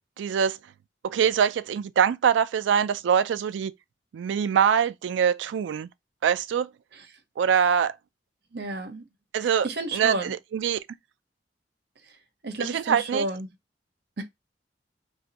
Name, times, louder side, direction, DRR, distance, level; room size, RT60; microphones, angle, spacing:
voice 1, 0.2-0.6 1.0-3.7 4.1-5.9 6.2-6.7 7.4-7.9 9.3-9.7 9.9-10.8 12.6-13.2, right 7 dB, 90° right, 0.3 m, -23 dB
voice 2, 8.5-9.1 9.4-10.3 12.0-12.2 12.4-13.5 14.2-14.3, right 2 dB, 65° right, 0.7 m, -32 dB
2.5 x 2.3 x 3.9 m
head